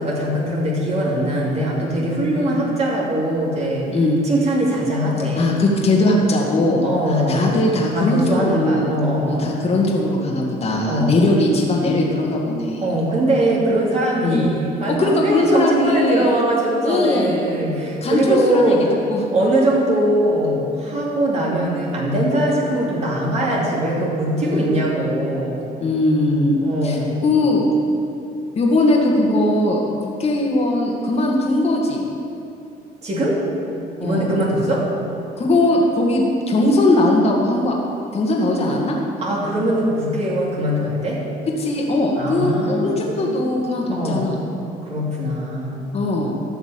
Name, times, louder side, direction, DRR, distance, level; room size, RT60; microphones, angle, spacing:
voice 1, 0.0-3.9 4.2-5.6 6.8-7.6 7.9-9.6 10.9-11.1 12.8-19.0 19.3-25.6 26.6-27.2 33.0-33.4 34.0-34.9 39.2-41.2 42.2-43.4 43.9-44.2 44.8-45.9, right 1 dB, 40° right, -4 dB, 2.8 m, -21 dB
voice 2, 3.9-4.2 5.3-8.9 9.3-12.9 14.2-14.5 14.9-16.3 16.8-17.6 18.0-18.8 19.1-19.2 24.4-24.7 25.8-27.6 28.6-32.0 34.0-34.3 35.4-37.7 38.1-39.0 41.6-44.4 45.9-46.4, left 2 dB, 35° left, -2 dB, 2.0 m, -19 dB
13.0 x 5.9 x 8.7 m, 2.6 s
cardioid pair, 110°, 17 cm